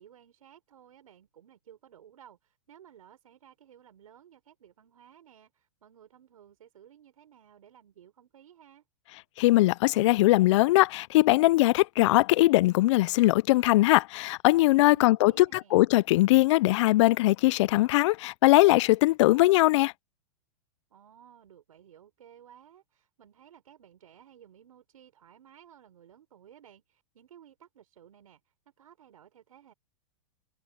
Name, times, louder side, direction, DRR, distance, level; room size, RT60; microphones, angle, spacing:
voice 1, 0.0-8.8 14.8-15.8 20.9-29.7, right 9 dB, 80° right, 5.3 m, -56 dB
voice 2, 9.4-15.5 15.7-19.9, left 18 dB, 55° left, 0.5 m, -21 dB
hypercardioid pair, 125°, 18 cm